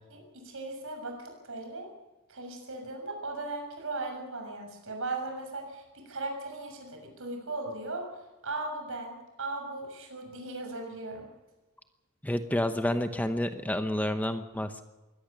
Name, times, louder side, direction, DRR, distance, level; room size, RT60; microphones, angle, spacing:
voice 1, 0.1-1.9 2.3-11.3, right 2 dB, 65° right, 3 dB, 6.9 m, -38 dB
voice 2, 12.2-14.8, left 1 dB, 10° left, 8 dB, 0.9 m, -29 dB
22.5 x 17.5 x 6.8 m, 1.1 s
head